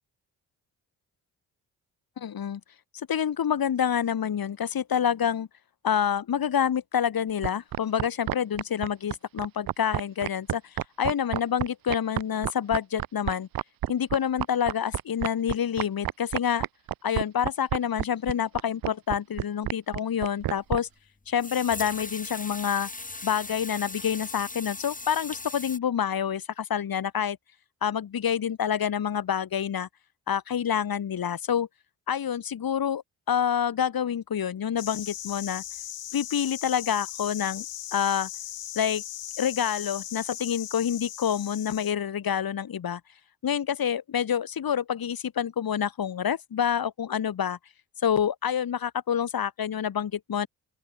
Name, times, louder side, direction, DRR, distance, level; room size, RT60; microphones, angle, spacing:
voice 1, 2.2-2.6 2.9-5.5 5.8-13.5 13.9-16.7 17.0-20.9 21.3-22.9 23.2-27.4 27.8-29.9 30.3-31.7 32.1-33.0 33.3-35.6 36.1-37.7 37.9-38.3 38.8-39.0 39.4-43.0 43.4-47.6 48.0-50.5, left 8 dB, 55° left, 2.1 m, -27 dB
sound 1, 7.4-20.8, right 13 dB, 55° right, 0.7 m, -29 dB
sound 2, 20.5-20.6 21.4-25.8, left 3 dB, 20° left, 2.1 m, -38 dB
sound 3, 34.8-41.9, left 12 dB, 75° left, 4.0 m, -38 dB
open air
supercardioid pair, 50°, 43 cm